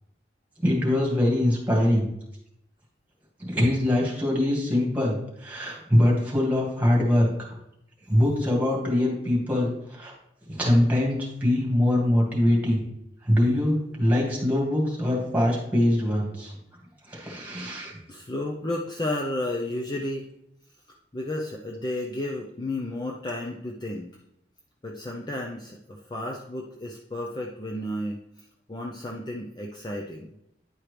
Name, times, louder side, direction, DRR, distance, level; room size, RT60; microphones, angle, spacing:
voice 1, 0.6-2.1 3.4-7.3 8.1-10.1 10.5-12.8 13.2-16.5 17.1-17.9, left 1 dB, 10° right, -2 dB, 2.1 m, -23 dB
voice 2, 18.1-20.2 21.1-24.2 24.8-28.2 28.7-30.4, left 1 dB, 25° left, 0 dB, 0.6 m, -32 dB
10.0 x 4.6 x 3.3 m, 0.77 s
head